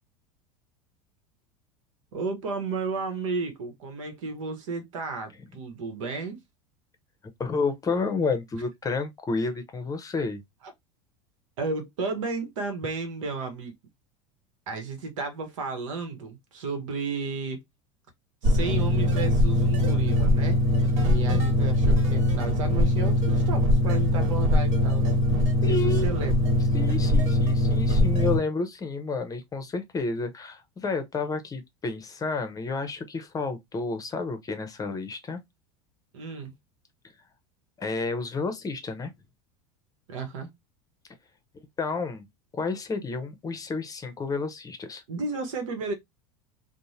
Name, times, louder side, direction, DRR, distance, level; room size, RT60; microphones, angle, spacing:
voice 1, 2.1-6.4 11.6-13.7 14.7-17.6 18.4-20.6 21.0-25.0 25.7-26.4 36.1-36.5 40.1-40.5 45.1-45.9, right 4 dB, 85° right, 0.9 m, -33 dB
voice 2, 7.4-10.4 25.6-26.2 26.7-35.4 37.8-39.1 41.8-42.3 42.5-45.0, left 3 dB, 20° left, 0.7 m, -30 dB
sound 1, 18.4-28.4, left 1 dB, 65° right, 1.3 m, -22 dB
2.6 x 2.1 x 3.0 m
supercardioid pair, 105°, 16 cm